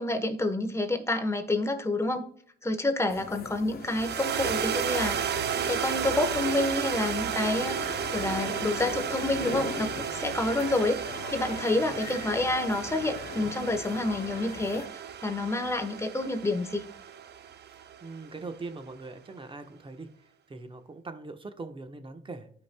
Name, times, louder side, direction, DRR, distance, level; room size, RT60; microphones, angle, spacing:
voice 1, 0.0-2.3 2.6-11.0 11.3-14.9 15.2-16.9, left 2 dB, 15° left, 6 dB, 1.2 m, -29 dB
sound 1, 3.1-14.9, left 8 dB, 50° left, 0.7 m, -41 dB
sound 2, 3.8-18.3, right 8 dB, 60° right, 0.7 m, -33 dB
voice 2, 17.7-20.1 20.5-22.5, right 3 dB, 25° right, 7 dB, 1.1 m, -42 dB
13.5 x 5.2 x 2.3 m, 0.62 s
cardioid pair, 90°, 20 cm